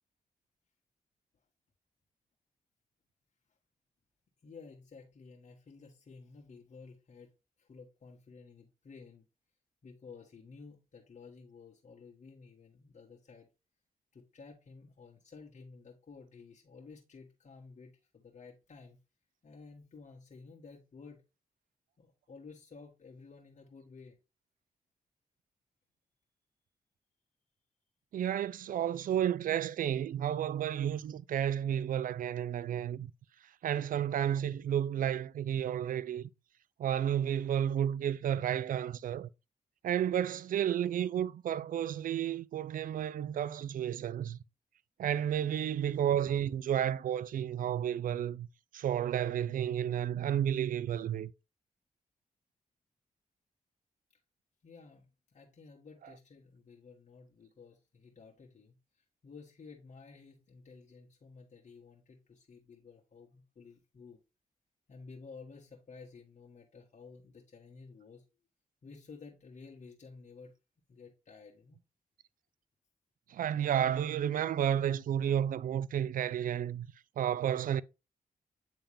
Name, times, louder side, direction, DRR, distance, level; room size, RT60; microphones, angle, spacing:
voice 1, 4.4-7.3 7.6-9.2 9.8-13.5 14.1-19.0 19.4-21.2 22.0-24.2 54.6-64.2 64.9-68.2 68.8-70.5 70.9-71.8, left 4 dB, 55° left, 1.5 m, -53 dB
voice 2, 28.1-33.1 33.6-36.3 36.8-39.3 39.8-44.4 45.0-48.5 48.7-51.3 73.3-76.9 77.2-77.8, right 10 dB, 65° right, 0.4 m, -31 dB
8.6 x 3.5 x 3.5 m
cardioid pair, 55°, 15 cm